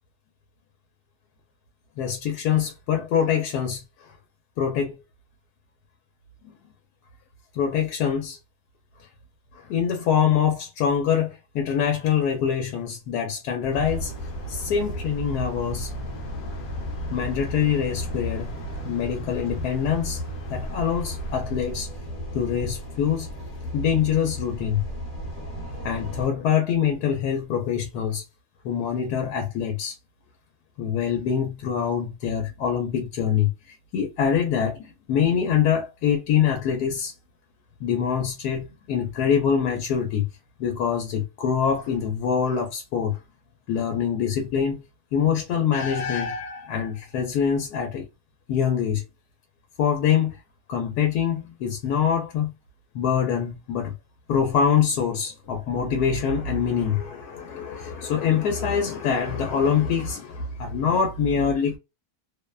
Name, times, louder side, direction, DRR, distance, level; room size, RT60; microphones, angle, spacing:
voice 1, 2.0-4.1 4.6-4.9 7.5-8.4 9.5-14.1 14.5-15.9 17.1-18.5 18.8-20.2 20.5-21.9 22.3-23.3 23.7-24.8 25.8-28.2 28.6-29.9 30.8-37.1 37.8-40.3 40.6-43.2 43.7-44.8 45.1-48.1 48.5-49.0 49.8-50.4 50.7-52.5 52.9-53.9 54.3-61.8, left 7 dB, 85° left, 1.1 m, -24 dB
sound 1, 13.6-21.4, equal, 70° left, 0.9 m, -37 dB
sound 2, 13.7-26.3, equal, 45° left, 0.8 m, -35 dB
2.7 x 2.1 x 2.2 m
omnidirectional pair, 1.6 m